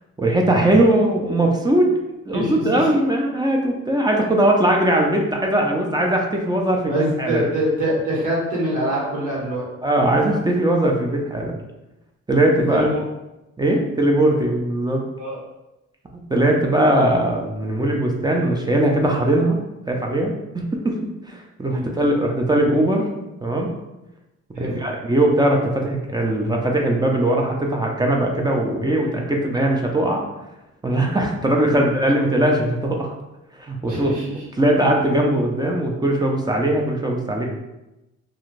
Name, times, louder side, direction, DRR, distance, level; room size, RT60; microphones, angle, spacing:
voice 1, 0.2-1.9 2.3-7.5 9.8-11.5 12.3-12.9 13.6-15.0 16.3-19.6 19.9-21.0 21.3-23.1 23.4-23.7 24.6-30.3 30.8-33.1 33.6-34.1 34.6-37.4, right 1 dB, 15° right, 0 dB, 0.4 m, -20 dB
voice 2, 2.3-2.9 6.9-9.6 12.7-13.0 15.2-15.4 21.7-21.9 24.5-24.7 31.7-31.9 33.9-34.3, right 1 dB, 80° right, -5 dB, 1.3 m, -24 dB
2.5 x 2.3 x 3.1 m, 0.95 s
cardioid pair, 90°, 30 cm